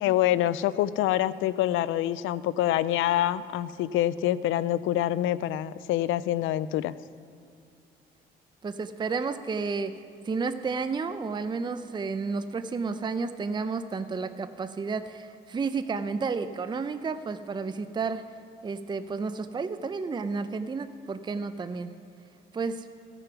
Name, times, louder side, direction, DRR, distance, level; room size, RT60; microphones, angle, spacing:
voice 1, 0.0-6.9, left 13 dB, 85° left, 17 dB, 0.4 m, -26 dB
voice 2, 8.6-9.9 10.3-18.2 18.6-21.9 22.5-22.9, right 4 dB, 20° right, 11 dB, 0.5 m, -31 dB
16.0 x 6.9 x 5.9 m, 2.5 s
cardioid pair, 90°, 20 cm